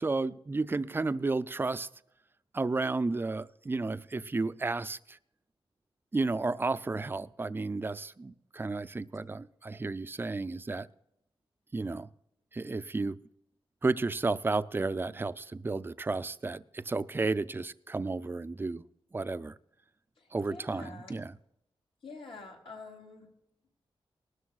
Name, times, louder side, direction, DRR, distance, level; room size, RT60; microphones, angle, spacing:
voice 1, 0.0-1.9 2.5-5.2 6.1-10.9 11.7-12.1 12.5-13.2 13.8-18.8 19.1-19.5 20.3-21.4, right 3 dB, 20° right, 0.4 m, -32 dB
voice 2, 20.2-21.2 22.0-23.3, left 3 dB, 65° left, 3.2 m, -47 dB
19.5 x 13.0 x 2.4 m
wide cardioid pair, 100°, 10 cm